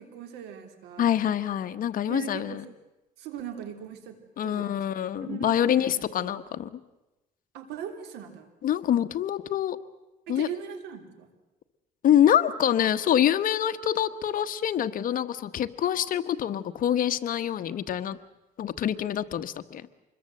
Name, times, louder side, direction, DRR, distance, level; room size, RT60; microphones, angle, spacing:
voice 1, 0.0-1.2 2.1-2.7 3.2-4.8 5.2-6.4 7.5-8.5 10.3-11.3, right 8 dB, 90° right, 8 dB, 3.3 m, -40 dB
voice 2, 1.0-2.6 4.4-6.7 8.6-9.8 10.3-10.5 12.0-18.2 18.6-19.8, left 10 dB, 55° left, 11 dB, 1.2 m, -25 dB
26.0 x 21.5 x 7.8 m, 1.0 s
cardioid pair, 110°, 17 cm